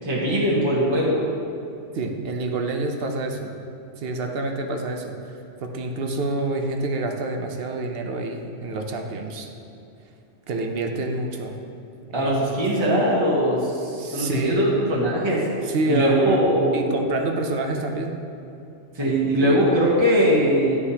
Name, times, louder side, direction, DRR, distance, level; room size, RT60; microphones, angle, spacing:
voice 1, 0.0-1.2 12.1-17.0 18.9-20.8, equal, 25° right, -5 dB, 1.1 m, -21 dB
voice 2, 1.9-3.5 4.0-5.2 5.6-9.5 10.5-11.6 12.1-12.4 13.9-14.7 15.7-18.2 19.0-19.6, right 2 dB, 60° right, 3 dB, 0.8 m, -28 dB
11.5 x 4.8 x 2.8 m, 2.7 s
omnidirectional pair, 1.2 m